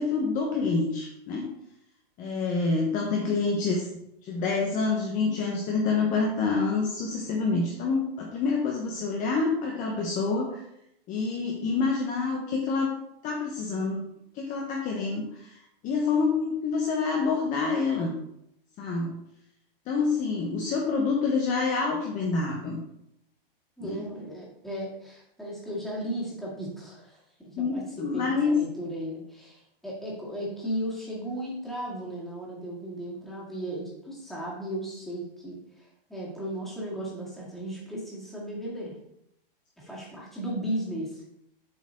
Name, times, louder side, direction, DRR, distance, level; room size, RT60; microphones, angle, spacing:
voice 1, 0.0-1.5 2.2-3.8 4.2-10.6 11.1-12.9 13.2-14.1 14.3-15.5 15.8-18.1 18.8-19.2 19.9-22.8 23.8-24.0 27.6-28.5, left 4 dB, 25° left, 0 dB, 0.9 m, -27 dB
voice 2, 23.8-38.9 39.8-41.2, right 1 dB, ahead, -6 dB, 2.2 m, -36 dB
7.6 x 4.1 x 3.8 m, 0.79 s
hypercardioid pair, 135°, 30 cm